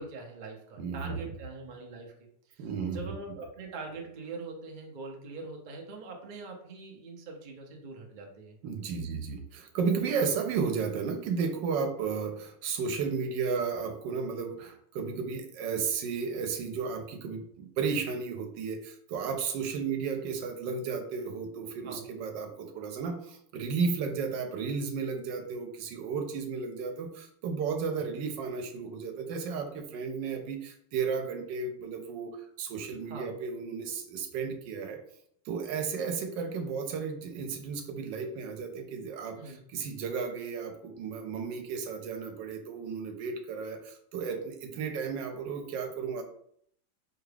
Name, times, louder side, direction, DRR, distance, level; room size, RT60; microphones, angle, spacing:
voice 1, 0.0-2.1 2.5-9.0 13.5-13.6 21.8-22.1 28.0-28.1 33.1-33.3 39.4-39.6, right 3 dB, 55° right, 1 dB, 0.5 m, -43 dB
voice 2, 0.8-1.2 2.6-3.2 8.6-35.0 35.4-46.2, right 5 dB, 85° right, 5 dB, 1.3 m, -33 dB
4.8 x 2.3 x 3.3 m, 0.67 s
omnidirectional pair, 1.9 m